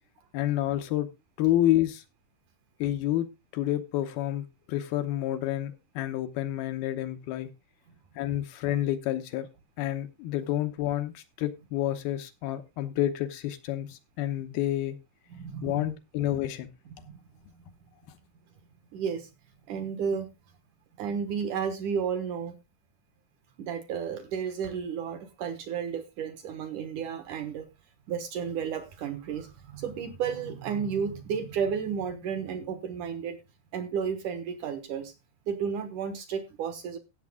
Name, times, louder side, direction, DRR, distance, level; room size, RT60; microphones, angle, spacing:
voice 1, 0.3-1.1 1.4-2.0 2.8-3.3 3.5-7.5 8.2-9.5 9.8-15.0 15.6-16.7, left 13 dB, 75° left, 9 dB, 2.8 m, -29 dB
voice 2, 15.3-15.9 16.3-16.4 17.0-17.2 18.9-19.3 19.7-20.3 21.0-22.6 23.6-27.7 28.1-33.4 33.7-35.1 35.5-37.0, right 7 dB, 65° right, 8 dB, 2.4 m, -32 dB
16.0 x 7.2 x 3.6 m, 0.25 s
omnidirectional pair, 4.6 m